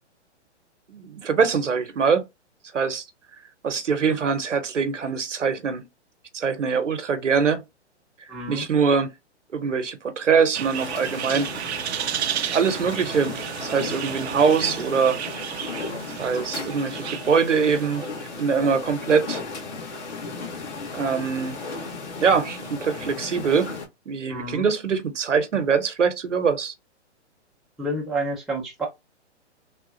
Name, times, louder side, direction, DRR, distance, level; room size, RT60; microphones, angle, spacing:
voice 1, 0.9-2.2 2.7-3.1 3.6-5.9 6.3-7.6 8.5-9.1 9.5-11.5 12.5-15.2 16.2-18.1 18.4-19.4 20.9-21.6 22.2-23.7 24.1-26.7, right 5 dB, 90° right, 0.9 m, -23 dB
voice 2, 8.3-8.7 24.3-24.7 27.8-28.9, right 1 dB, ahead, 0.5 m, -29 dB
sound 1, 10.5-18.3, right 10 dB, 65° right, 0.5 m, -33 dB
sound 2, 10.7-23.9, left 3 dB, 40° left, 1.6 m, -35 dB
3.5 x 2.3 x 2.6 m
hypercardioid pair, 130°, 36 cm